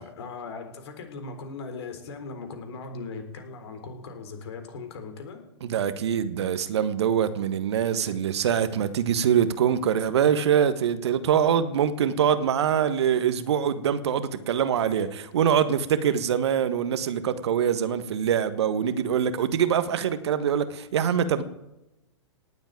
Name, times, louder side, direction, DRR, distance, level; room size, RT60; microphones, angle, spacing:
voice 1, 0.0-5.4, left 4 dB, 60° left, 3.9 m, -39 dB
voice 2, 5.6-21.4, right 8 dB, 60° right, 1.5 m, -24 dB
18.0 x 8.0 x 9.0 m
figure-of-eight pair, 105°, 16 cm